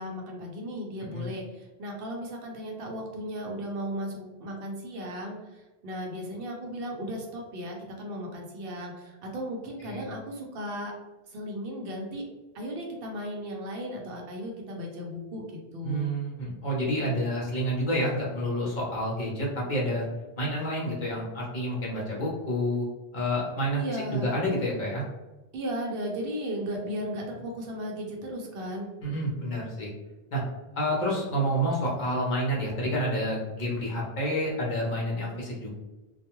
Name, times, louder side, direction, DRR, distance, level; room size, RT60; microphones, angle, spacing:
voice 1, 0.0-10.9 11.3-12.2 12.5-16.1 23.7-24.3 25.5-28.9, equal, 70° right, 0 dB, 0.8 m, -36 dB
voice 2, 15.8-20.1 20.4-22.9 23.1-25.0 29.0-29.9 30.3-30.4 30.8-35.7, equal, 50° left, -4 dB, 0.8 m, -29 dB
2.3 x 2.2 x 2.9 m, 1.1 s
omnidirectional pair, 1.0 m